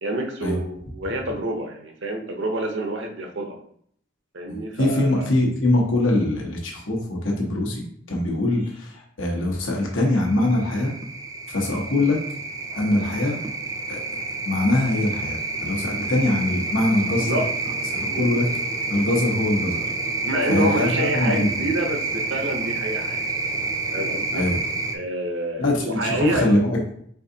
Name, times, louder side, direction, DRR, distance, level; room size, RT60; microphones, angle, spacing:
voice 1, 0.0-3.6 4.3-5.3 17.2-17.5 18.0-18.3 20.2-23.3 23.9-24.4 24.9-26.5, right 1 dB, 70° right, 3 dB, 0.8 m, -28 dB
voice 2, 4.5-10.9 11.5-12.2 12.7-13.4 13.9-14.0 14.4-17.4 17.9-18.4 18.9-19.8 20.5-21.5 24.3-24.6 25.6-26.8, left 1 dB, 90° left, -1 dB, 1.0 m, -23 dB
sound 1, 10.0-25.0, right 3 dB, 20° right, 0.4 m, -29 dB
4.7 x 3.5 x 2.8 m, 0.65 s
head